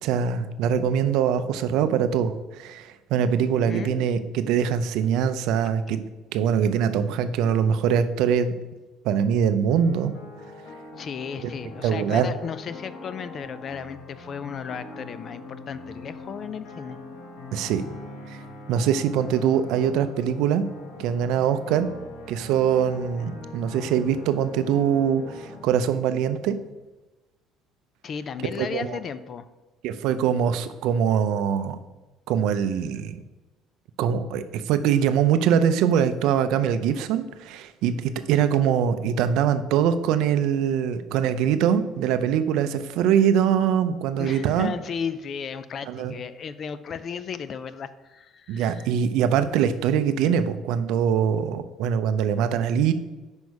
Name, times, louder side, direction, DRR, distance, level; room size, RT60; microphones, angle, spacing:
voice 1, 0.0-6.0 6.3-8.5 9.0-10.1 11.4-11.5 11.8-12.3 17.5-17.8 18.3-18.4 18.7-20.6 21.0-21.9 22.3-26.6 28.6-29.0 29.8-31.8 32.3-33.2 34.0-44.7 45.9-46.1 48.5-52.9, right 8 dB, 65° right, 10 dB, 0.5 m, -23 dB
voice 2, 3.5-4.1 5.6-5.7 11.0-17.0 28.0-29.5 44.2-48.9, left 6 dB, 30° left, 14 dB, 0.3 m, -35 dB
sound 1, 9.7-25.6, left 2 dB, 75° left, 1.3 m, -42 dB
5.3 x 4.8 x 6.3 m, 1.1 s
cardioid pair, 175°, 0 cm